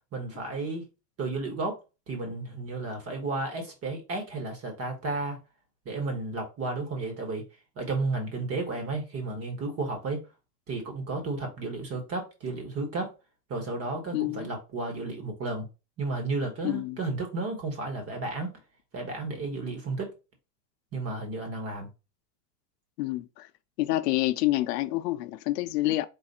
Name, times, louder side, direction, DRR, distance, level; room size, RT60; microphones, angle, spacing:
voice 1, 0.1-0.9 1.2-1.8 2.1-5.4 5.8-7.4 7.8-10.2 10.7-13.1 13.5-15.7 16.0-18.5 18.9-20.1 20.9-21.9, right 3 dB, 30° right, 1.4 m, -32 dB
voice 2, 14.1-14.5 16.6-17.0 23.0-23.5 23.8-26.1, left 17 dB, 85° left, 0.6 m, -28 dB
4.0 x 2.4 x 4.2 m
supercardioid pair, 130°, 47 cm